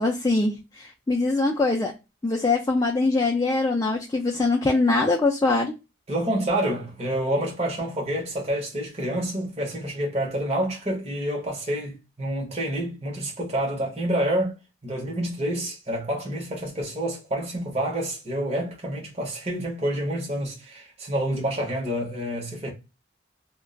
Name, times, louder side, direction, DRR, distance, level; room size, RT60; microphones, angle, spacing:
voice 1, 0.0-1.9 2.2-5.7, left 3 dB, 15° left, 0.3 m, -23 dB
voice 2, 6.1-14.6 14.8-22.7, right 1 dB, 30° right, 0.8 m, -28 dB
2.3 x 2.2 x 3.5 m
head